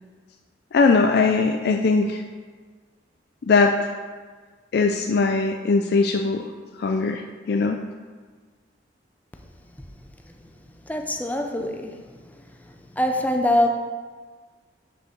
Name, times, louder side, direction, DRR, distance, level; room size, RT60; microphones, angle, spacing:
voice 1, 0.7-2.2 3.5-3.9 4.7-6.5 6.8-7.2 7.5-7.8, left 4 dB, 60° left, 4 dB, 0.4 m, -20 dB
voice 2, 10.9-12.0 13.0-13.7, left 1 dB, 10° left, 3 dB, 0.5 m, -23 dB
6.3 x 5.3 x 5.1 m, 1.5 s
head